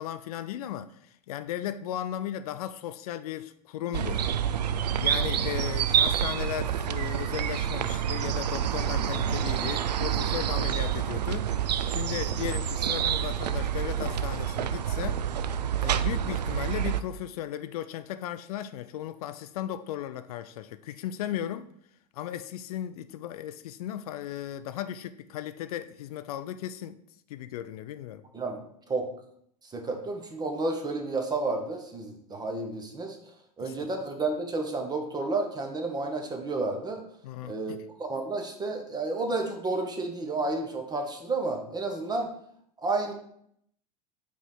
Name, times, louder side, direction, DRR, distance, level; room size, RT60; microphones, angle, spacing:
voice 1, 0.0-4.2 5.0-15.2 15.8-21.7 22.1-27.0 27.3-28.2 33.6-33.9 37.2-37.8, left 11 dB, 65° left, 0.4 m, -36 dB
sound 1, 3.9-17.0, right 9 dB, 85° right, 0.4 m, -28 dB
voice 2, 29.6-33.2 33.6-37.0 37.4-42.3 42.8-43.1, right 3 dB, 20° right, 1.2 m, -31 dB
5.3 x 3.3 x 5.6 m
hypercardioid pair, 95°, 21 cm